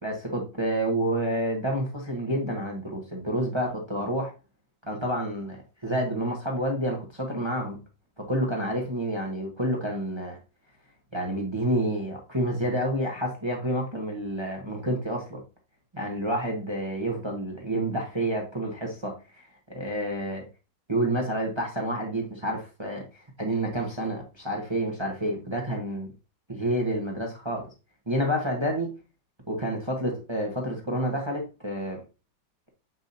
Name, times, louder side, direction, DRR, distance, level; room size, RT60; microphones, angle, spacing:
voice 1, 0.0-4.3 4.9-7.8 8.2-10.4 11.1-15.4 15.9-20.5 20.9-26.1 26.5-27.7 28.1-28.9 29.5-32.0, right 1 dB, 20° right, 0 dB, 1.2 m, -29 dB
7.1 x 6.3 x 2.7 m, 0.30 s
omnidirectional pair, 1.8 m